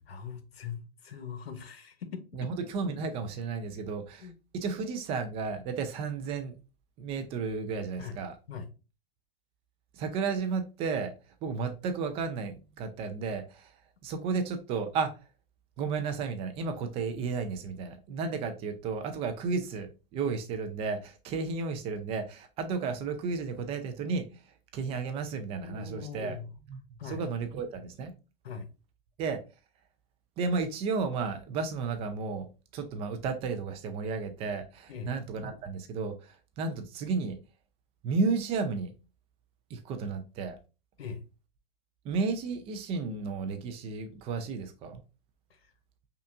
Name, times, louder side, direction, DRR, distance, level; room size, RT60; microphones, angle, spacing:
voice 1, 0.0-2.5 4.2-4.3 8.0-8.2 8.5-8.7 25.6-26.5 27.0-27.2 28.4-28.7 34.9-35.1 41.0-41.2, left 6 dB, 80° left, 1.0 m, -41 dB
voice 2, 2.3-6.5 7.0-8.3 9.9-11.1 11.4-13.7 14.0-15.1 15.8-24.3 24.7-26.4 26.7-26.8 27.1-28.1 29.2-29.4 30.4-32.5 32.7-37.4 38.0-38.9 39.7-40.6 42.0-45.0, right 4 dB, 20° right, 0.5 m, -33 dB
5.4 x 2.5 x 2.4 m
hypercardioid pair, 135°, 30 cm